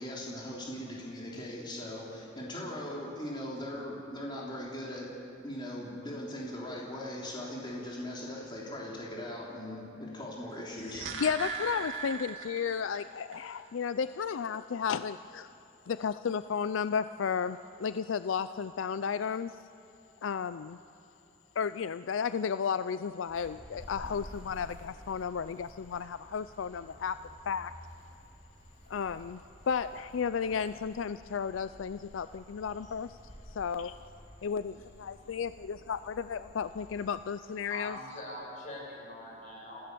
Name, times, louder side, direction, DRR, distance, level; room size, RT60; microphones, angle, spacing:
voice 1, 0.0-5.1 5.4-11.0, left 1 dB, 25° left, -4 dB, 3.5 m, -39 dB
sound 1, 10.6-13.0 13.3-13.4, right 4 dB, 90° right, 2.0 m, -38 dB
voice 2, 10.9-15.5 15.9-19.6 20.2-20.8 21.6-27.2 27.5-27.7 28.9-33.2 33.5-34.0 34.4-38.0, left 6 dB, 85° left, 13 dB, 0.4 m, -33 dB
sound 2, 23.3-37.1, equal, 25° right, 5.0 m, -52 dB
voice 3, 32.6-32.9 33.5-33.7 37.6-39.9, left 1 dB, 40° left, -2 dB, 6.6 m, -44 dB
29.0 x 16.0 x 6.9 m, 3.0 s
head